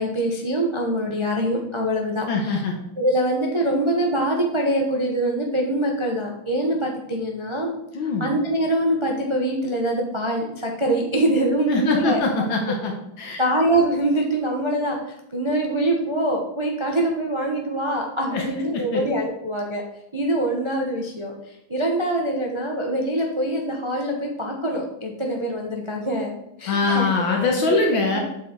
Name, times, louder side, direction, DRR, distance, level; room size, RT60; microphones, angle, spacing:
voice 1, 0.0-2.6 3.0-7.7 8.0-12.2 13.4-19.8 20.1-26.3 26.6-27.5 28.1-28.2, right 1 dB, 25° right, 0 dB, 0.7 m, -24 dB
voice 2, 2.3-2.8 7.9-8.3 11.7-12.9 13.2-13.4 18.3-18.5 18.7-19.0 26.7-28.2, left 3 dB, 70° left, 1 dB, 1.8 m, -23 dB
8.0 x 6.8 x 4.5 m, 0.82 s
omnidirectional pair, 2.3 m